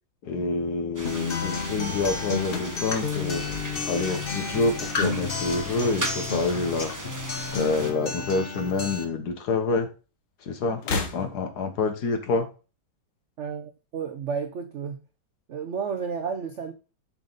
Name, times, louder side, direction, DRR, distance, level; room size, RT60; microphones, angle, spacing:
voice 1, 0.2-3.4 3.9-6.9 7.5-9.9 10.5-12.5, left 3 dB, 60° left, 1.7 m, -27 dB
sound 1, 0.9-7.9, right 1 dB, 15° right, 0.8 m, -37 dB
Acoustic guitar, 1.0-9.0, left 4 dB, 40° left, 0.9 m, -31 dB
sound 2, 2.4-4.8 5.1-5.7 6.7-7.7 8.0-8.1 9.2-9.3 10.7-11.7, left 3 dB, 90° left, 2.0 m, -36 dB
voice 2, 13.4-15.0 15.5-16.7, right 6 dB, 70° right, 0.6 m, -32 dB
7.6 x 5.1 x 4.0 m
omnidirectional pair, 2.1 m